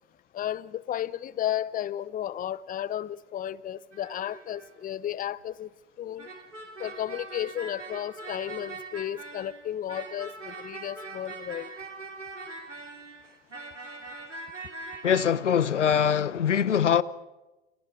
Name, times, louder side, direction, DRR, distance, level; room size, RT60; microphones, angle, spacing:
voice 1, 0.3-5.7 6.0-6.3 6.8-11.7, left 11 dB, 25° left, 0.8 m, -33 dB
sound 1, 3.9-4.8 6.2-15.3, right 3 dB, 85° right, 3.5 m, -42 dB
voice 2, 15.0-17.0, left 8 dB, 80° left, 0.9 m, -23 dB
29.5 x 25.5 x 4.8 m
figure-of-eight pair, 75°, 36 cm